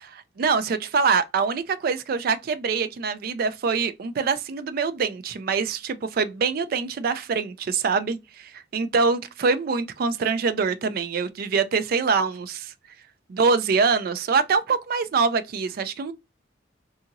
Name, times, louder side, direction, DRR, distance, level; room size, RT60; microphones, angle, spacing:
voice 1, 0.0-12.7 13.3-16.1, right 5 dB, 50° right, 0.3 m, -24 dB
2.7 x 2.7 x 2.4 m
head